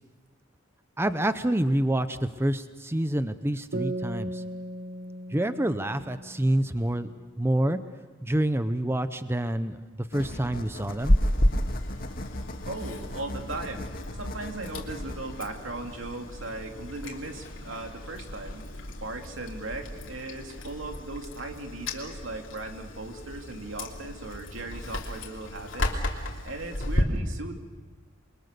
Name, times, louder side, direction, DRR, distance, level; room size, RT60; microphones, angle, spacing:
voice 1, 1.0-4.4 5.3-7.1 7.4-7.8 8.2-9.8 10.1-11.1, right 1 dB, 10° right, 11 dB, 0.7 m, -27 dB
sound 1, 3.7-7.2, right 1 dB, 55° right, 0.9 m, -37 dB
sound 2, 10.1-18.6, left 1 dB, 50° left, 2.0 m, -41 dB
Chewing mastication, 11.0-27.0, left 1 dB, 80° left, 3.1 m, -32 dB
voice 2, 12.7-18.7 19.0-25.9 26.2-27.5, right 2 dB, 85° right, 4 dB, 2.6 m, -38 dB
28.5 x 23.0 x 6.7 m, 1.3 s
head